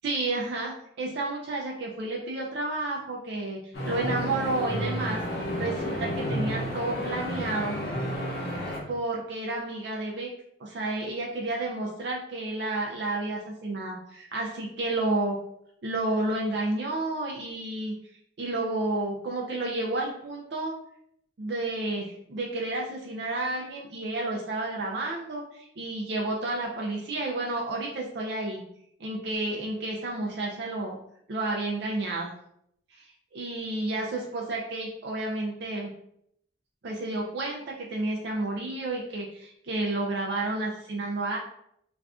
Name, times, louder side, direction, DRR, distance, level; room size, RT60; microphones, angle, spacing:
voice 1, 0.0-3.6 3.8-7.8 8.9-10.3 10.6-15.4 15.8-17.9 18.4-20.7 21.4-28.6 29.0-31.0 31.3-32.3 32.9-33.1 33.3-35.9 36.8-41.4, right 2 dB, 60° right, -1 dB, 0.4 m, -31 dB
sound 1, 3.7-8.8, equal, 55° left, 0.8 m, -31 dB
2.5 x 2.3 x 3.4 m, 0.72 s
head